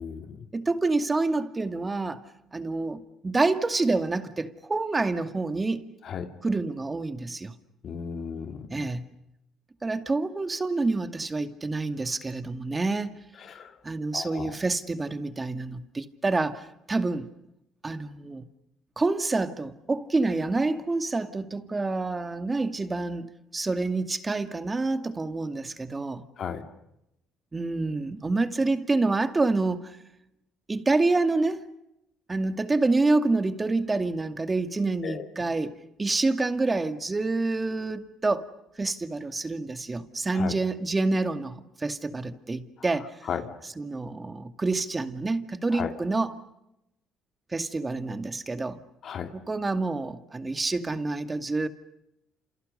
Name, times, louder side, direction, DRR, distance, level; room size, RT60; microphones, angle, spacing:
voice 1, 0.0-0.5 6.0-6.3 7.8-8.9 13.4-13.8 14.1-14.5 26.4-26.6 35.0-35.3 40.3-40.6 42.8-42.9 43.2-43.5 45.7-45.9 49.0-49.3, left 7 dB, 55° left, 2.7 m, -35 dB
voice 2, 0.5-2.2 2.5-5.8 6.4-7.5 8.7-9.1 9.8-13.2 13.8-17.3 17.8-18.4 19.0-26.2 27.5-30.0 30.7-31.6 32.3-35.7 36.0-38.5 38.8-43.1 43.8-46.3 47.5-48.8 49.3-51.7, right 3 dB, 20° right, 2.3 m, -27 dB
30.0 x 28.5 x 6.8 m
cardioid pair, 90°, 0 cm